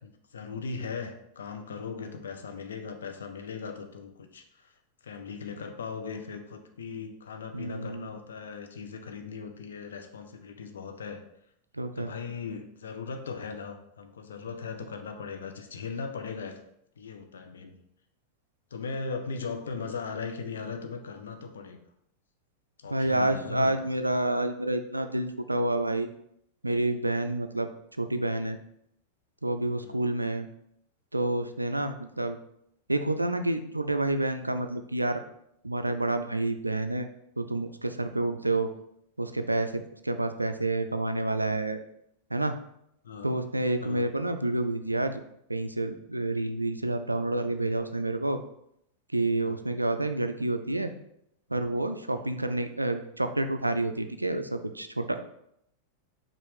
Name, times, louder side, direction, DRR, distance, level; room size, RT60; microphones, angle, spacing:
voice 1, 0.0-4.7 5.0-11.2 12.0-16.6 17.0-17.7 18.7-21.8 22.8-23.9 29.8-30.0 43.0-43.3 43.8-44.0 49.4-49.6 52.1-52.3, left 5 dB, 65° left, 5 dB, 0.6 m, -38 dB
voice 2, 7.5-8.1 11.8-12.1 22.9-26.1 26.6-27.7 28.0-28.6 29.4-30.5 31.1-32.4 32.9-35.2 35.6-37.1 37.4-38.7 39.2-41.8 42.3-42.5 43.2-45.2 45.5-48.4 49.1-50.9 51.5-55.2, right 2 dB, 85° right, 8 dB, 0.3 m, -29 dB
5.3 x 2.5 x 3.4 m, 0.74 s
figure-of-eight pair, 90°, 0 cm